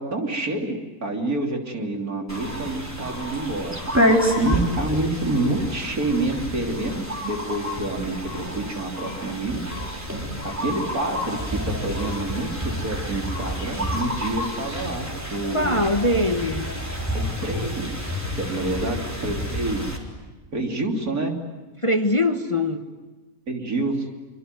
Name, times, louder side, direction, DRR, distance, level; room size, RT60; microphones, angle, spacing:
voice 1, 0.0-3.8 4.3-9.6 10.4-15.8 17.1-17.9 18.4-20.0 20.5-21.4 23.5-24.1, right 2 dB, 75° right, 3.7 m, -27 dB
sound 1, 2.3-20.0, equal, 10° right, 3.9 m, -28 dB
voice 2, 15.5-16.7 21.8-22.9, left 1 dB, 25° left, 1.2 m, -22 dB
26.0 x 25.0 x 9.3 m
omnidirectional pair, 1.6 m